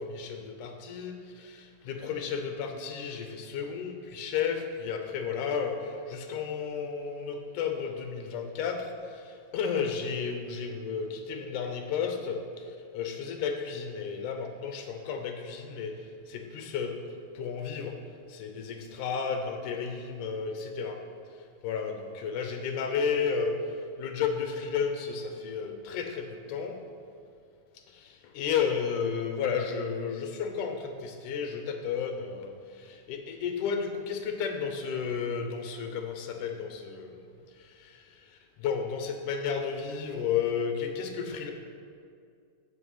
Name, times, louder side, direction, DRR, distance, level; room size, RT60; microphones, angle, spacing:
voice 1, 0.0-17.0 17.3-18.0 18.3-21.0 21.6-26.8 27.9-37.2 37.6-41.5, left 6 dB, 75° left, 5 dB, 2.4 m, -33 dB
14.5 x 5.5 x 5.7 m, 2.3 s
omnidirectional pair, 3.7 m